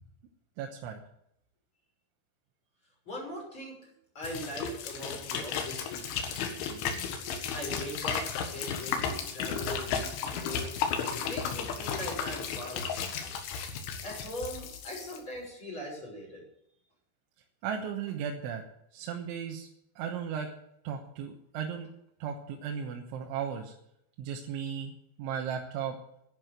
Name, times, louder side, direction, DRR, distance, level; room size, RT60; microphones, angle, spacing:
voice 1, 0.6-1.0 17.6-18.6 18.9-19.7 20.0-20.5 20.9-21.9 22.2-23.7 24.2-24.9 25.2-26.0, right 7 dB, 80° right, 2 dB, 3.5 m, -35 dB
voice 2, 3.0-3.8 4.1-7.1 7.5-10.7 11.1-13.4 14.0-16.4, equal, 25° left, -3 dB, 6.7 m, -41 dB
sound 1, 4.2-15.2, left 6 dB, 80° left, 4.0 m, -34 dB
11.0 x 10.5 x 8.0 m, 0.77 s
omnidirectional pair, 5.4 m